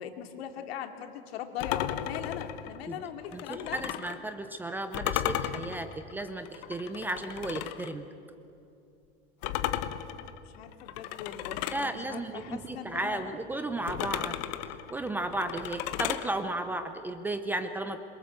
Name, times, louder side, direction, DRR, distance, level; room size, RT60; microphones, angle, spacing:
voice 1, 0.0-3.8 10.4-13.4, left 9 dB, 75° left, 6 dB, 2.7 m, -40 dB
sound 1, 1.6-4.2 4.9-7.9 9.4-11.9 13.9-16.3, left 12 dB, 45° left, 1.1 m, -34 dB
voice 2, 3.3-8.1 11.7-14.4 14.9-18.0, right 2 dB, 5° right, 9 dB, 0.5 m, -34 dB
26.5 x 23.0 x 7.8 m, 2.7 s
supercardioid pair, 170°, 31 cm